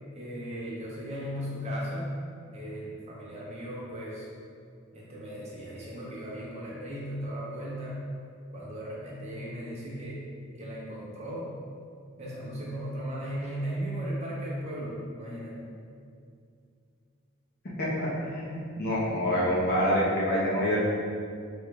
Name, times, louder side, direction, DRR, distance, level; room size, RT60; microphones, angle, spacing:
voice 1, 0.1-2.1 2.5-4.3 4.9-8.0 8.5-10.3 10.6-11.5 12.2-15.6, equal, 30° right, -5 dB, 0.7 m, -36 dB
voice 2, 17.8-20.8, equal, 45° left, -6 dB, 0.9 m, -27 dB
3.5 x 2.4 x 4.5 m, 2.3 s
head